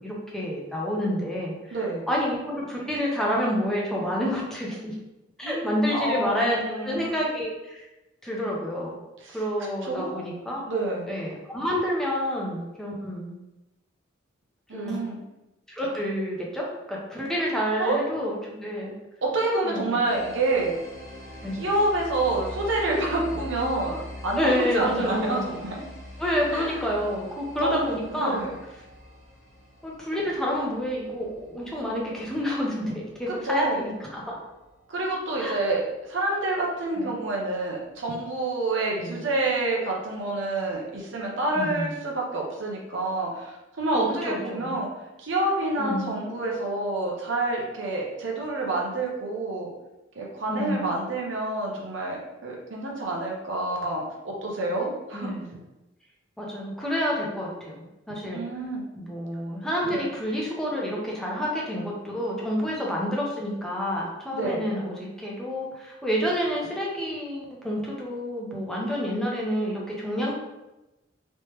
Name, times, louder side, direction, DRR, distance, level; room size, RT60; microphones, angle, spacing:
voice 1, 0.0-1.8 2.1-4.9 5.4-7.9 8.2-9.0 9.3-10.7 11.1-13.4 14.7-15.0 15.7-18.9 19.6-20.0 21.4-21.7 24.3-25.5 26.2-28.4 29.8-34.4 35.4-35.6 38.9-39.2 41.5-41.9 43.9-44.8 45.8-46.1 50.5-50.9 55.1-55.6 56.4-58.4 59.0-70.3, equal, 5° left, -4 dB, 0.7 m, -29 dB
voice 2, 1.7-2.0 5.4-7.1 9.2-9.4 9.8-10.2 10.7-11.1 14.7-15.2 17.8-18.0 19.2-20.8 21.5-25.8 26.5-26.9 27.6-28.5 33.3-33.9 34.9-44.9 45.2-49.7 50.2-54.1 54.4-55.3 58.3-58.8 59.8-60.1 64.3-64.6, right 2 dB, 65° right, -2 dB, 0.8 m, -28 dB
sound 1, 20.0-35.5, left 1 dB, 70° left, 1.1 m, -44 dB
3.2 x 3.1 x 3.1 m, 0.99 s
head